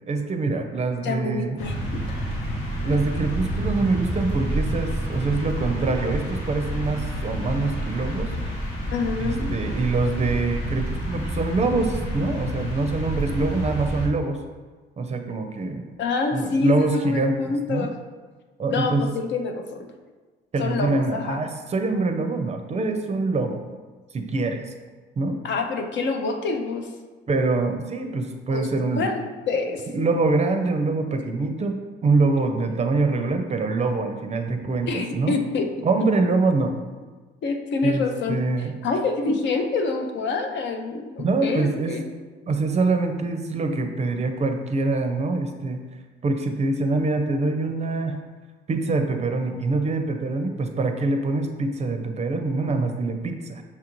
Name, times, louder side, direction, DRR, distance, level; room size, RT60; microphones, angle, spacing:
voice 1, 0.0-1.6 2.8-8.6 9.2-14.4 15.0-15.9 16.3-17.4 17.7-17.9 18.6-19.1 20.5-23.6 24.1-24.7 25.2-25.4 27.3-29.1 29.9-35.4 35.8-36.8 37.8-38.7 41.2-42.0 42.5-45.8 46.2-48.2 48.7-53.6, right 3 dB, 35° right, 5 dB, 0.5 m, -24 dB
voice 2, 1.0-1.7 2.1-2.3 8.9-9.5 16.0-17.9 18.7-19.9 20.6-21.4 25.4-26.9 28.5-28.7 28.9-30.1 32.0-32.1 34.9-35.7 37.4-38.4 38.8-42.0, left 4 dB, 65° left, 5 dB, 0.5 m, -27 dB
sound 1, 1.6-14.1, right 1 dB, 85° left, 1.2 m, -29 dB
5.8 x 2.5 x 3.0 m, 1.4 s
cardioid pair, 90°, 20 cm